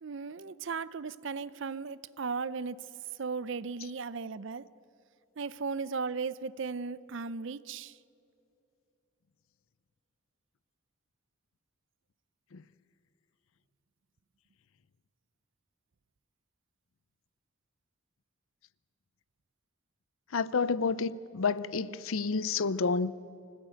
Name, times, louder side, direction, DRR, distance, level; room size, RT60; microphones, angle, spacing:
voice 1, 0.0-4.7 5.4-8.0, right 5 dB, 55° right, 0.5 m, -36 dB
voice 2, 20.3-23.1, left 4 dB, 70° left, 0.6 m, -29 dB
25.0 x 16.0 x 9.0 m
head